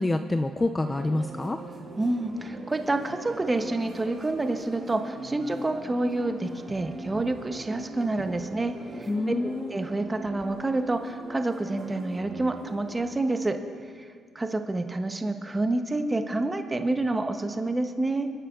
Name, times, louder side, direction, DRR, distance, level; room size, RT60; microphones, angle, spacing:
voice 1, 0.0-1.6 9.1-9.7, left 2 dB, 15° left, 7 dB, 0.4 m, -27 dB
sound 1, 0.8-13.0, right 2 dB, 50° right, 2.7 m, -41 dB
voice 2, 2.0-13.6 14.0-14.1 14.3-18.3, right 2 dB, 15° right, 6 dB, 0.7 m, -28 dB
27.5 x 11.5 x 2.3 m, 2.1 s
cardioid pair, 125°, 0 cm